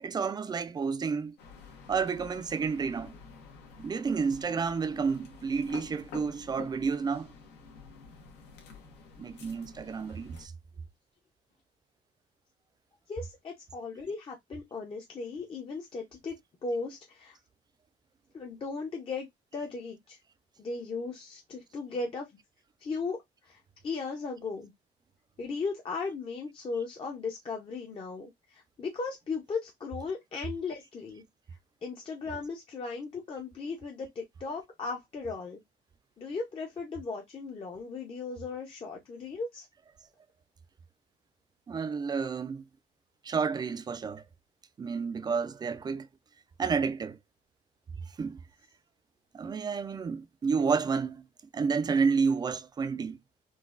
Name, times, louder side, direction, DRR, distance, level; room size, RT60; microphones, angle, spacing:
voice 1, 0.0-1.4 1.9-3.2 3.8-7.3 9.2-10.5 41.7-42.6 43.2-44.2 44.8-46.1 46.6-47.2 48.2-48.4 49.3-51.3 51.5-53.2, right 5 dB, 25° right, 0.3 m, -30 dB
sound 1, 1.4-10.5, left 5 dB, 85° left, 1.0 m, -50 dB
voice 2, 13.1-16.3 16.6-17.4 18.3-19.3 19.5-20.2 20.6-22.3 22.8-24.7 25.4-31.2 31.8-35.6 36.2-39.7, left 4 dB, 30° left, 0.6 m, -37 dB
3.9 x 2.2 x 2.4 m
cardioid pair, 110°, 17 cm